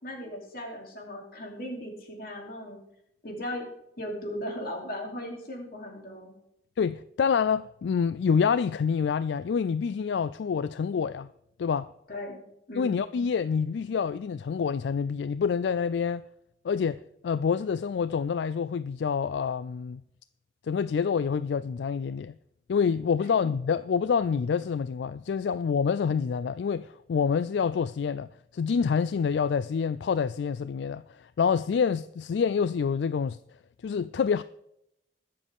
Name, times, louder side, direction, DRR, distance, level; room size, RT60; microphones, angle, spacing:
voice 1, 0.0-2.8 3.2-3.7 4.0-6.3 12.1-12.4 12.7-13.0 23.2-23.5, left 1 dB, 55° left, 3.1 m, -37 dB
voice 2, 6.8-11.3 11.6-11.9 12.8-16.3 16.6-20.0 20.7-22.3 22.7-33.4 33.8-34.4, left 6 dB, 75° left, 0.3 m, -27 dB
21.5 x 7.6 x 3.6 m
head